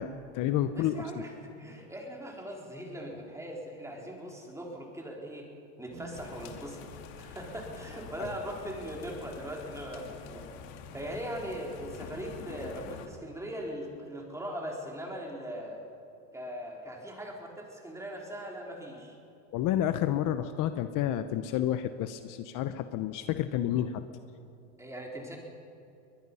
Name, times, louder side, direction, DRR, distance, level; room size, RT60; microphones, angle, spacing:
voice 1, 0.0-1.2 8.2-8.3 19.5-24.0, left 11 dB, 50° left, 10 dB, 0.9 m, -30 dB
voice 2, 0.7-5.5 5.8-6.9 7.2-10.5 10.9-15.8 16.3-19.2 24.8-25.4, equal, 5° right, -1 dB, 4.2 m, -40 dB
sound 1, 5.9-10.4, right 4 dB, 85° right, 4.4 m, -54 dB
sound 2, 6.1-13.1, left 7 dB, 70° left, 2.3 m, -46 dB
22.0 x 21.0 x 5.6 m, 2.7 s
supercardioid pair, 125°, 41 cm